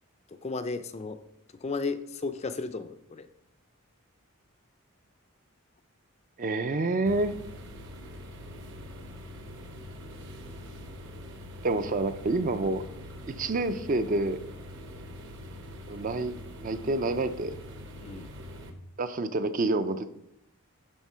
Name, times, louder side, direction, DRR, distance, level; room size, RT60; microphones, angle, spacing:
voice 1, 0.3-1.2 1.5-3.3 18.0-18.3, left 4 dB, 30° left, 10 dB, 0.4 m, -34 dB
voice 2, 6.4-7.3 11.6-12.8 13.3-14.4 15.9-17.6 19.0-20.1, right 2 dB, 35° right, 10 dB, 0.4 m, -28 dB
sound 1, 7.0-18.7, left 1 dB, 55° right, 1.0 m, -44 dB
11.0 x 3.7 x 5.5 m, 0.81 s
head